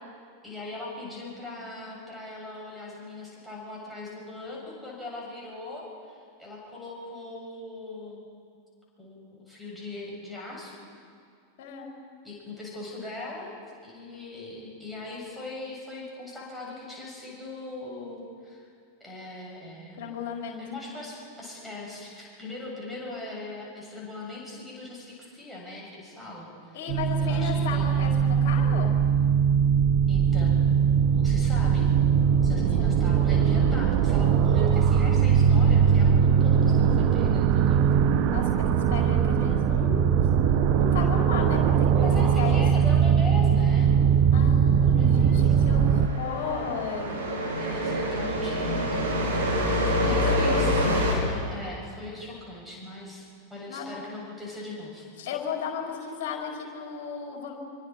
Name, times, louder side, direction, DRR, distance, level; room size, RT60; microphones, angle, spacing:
voice 1, 0.4-8.2 9.0-10.8 12.2-13.6 13.8-18.6 19.0-20.0 20.6-26.8 27.2-28.1 30.1-30.6 31.1-31.9 32.4-37.8 42.0-43.9 44.8-45.6 47.2-55.0, left 2 dB, ahead, -4 dB, 7.6 m, -40 dB
voice 2, 11.6-11.9 20.0-20.6 26.7-28.9 32.5-32.9 38.3-42.6 44.3-47.2 49.9-51.4 53.7-53.9 55.2-57.6, left 6 dB, 50° left, -1 dB, 4.9 m, -35 dB
sound 1, 26.9-46.1, right 7 dB, 40° right, 1.0 m, -21 dB
sound 2, 45.5-51.1, equal, 70° right, 5.2 m, -26 dB
25.5 x 24.5 x 4.7 m, 2.3 s
figure-of-eight pair, 90°, 0 cm